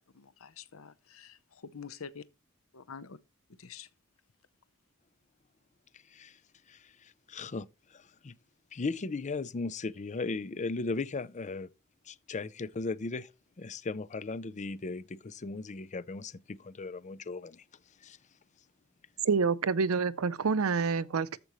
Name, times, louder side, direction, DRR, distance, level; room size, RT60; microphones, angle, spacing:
voice 1, 0.1-1.4 1.6-2.2 2.7-3.2 3.6-3.9, left 6 dB, 75° left, 0.8 m, -46 dB
voice 2, 6.7-8.4 8.7-11.7 12.1-13.3 13.6-17.6 18.0-18.2, left 3 dB, 35° left, 0.5 m, -37 dB
voice 3, 19.2-21.4, right 5 dB, 90° right, 0.6 m, -27 dB
14.0 x 5.1 x 3.1 m
head